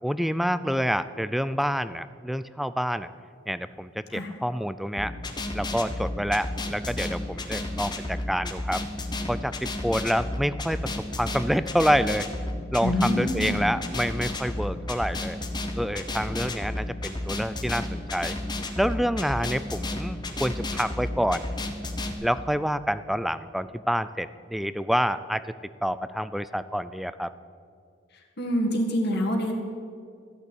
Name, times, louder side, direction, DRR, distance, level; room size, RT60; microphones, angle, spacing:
voice 1, 0.0-3.1 3.5-5.1 5.5-8.8 9.3-12.3 12.7-15.4 15.8-18.4 18.8-21.4 22.2-25.4 25.8-27.3, equal, ahead, 14 dB, 0.3 m, -27 dB
sound 1, 5.0-22.1, left 1 dB, 20° left, 1.1 m, -32 dB
voice 2, 12.8-13.7 28.4-29.5, equal, 60° left, 1 dB, 1.8 m, -26 dB
14.0 x 6.8 x 9.7 m, 2.3 s
head